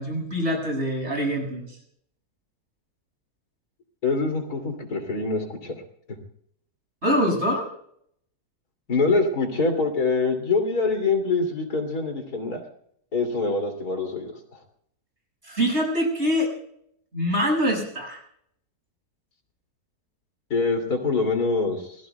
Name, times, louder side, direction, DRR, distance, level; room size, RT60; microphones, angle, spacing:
voice 1, 0.0-1.8 7.0-7.7 15.4-16.5 17.1-18.2, equal, 45° right, 0 dB, 7.6 m, -24 dB
voice 2, 4.0-5.8 6.1-6.2 8.9-12.6 13.1-14.3 20.5-22.0, left 3 dB, 75° left, 4 dB, 3.5 m, -24 dB
28.5 x 21.0 x 2.3 m, 0.68 s
omnidirectional pair, 1.6 m